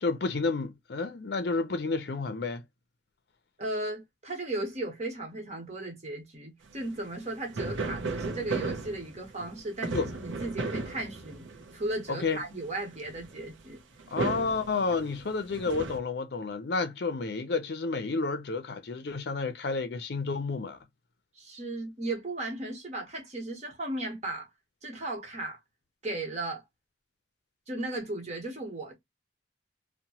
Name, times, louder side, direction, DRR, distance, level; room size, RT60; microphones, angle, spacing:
voice 1, 0.0-2.6 9.9-10.1 12.1-12.4 14.1-20.8, left 4 dB, 60° left, 0.5 m, -30 dB
voice 2, 3.6-11.5 11.7-13.8 21.4-24.5 24.8-25.6 26.0-26.6 27.7-29.0, right 2 dB, 35° right, 1.1 m, -36 dB
sound 1, 6.8-6.9 7.3-7.4 7.5-11.9 12.7-12.8 12.9-13.5 14.0-16.0, right 3 dB, 85° right, 0.6 m, -35 dB
2.8 x 2.1 x 2.8 m
head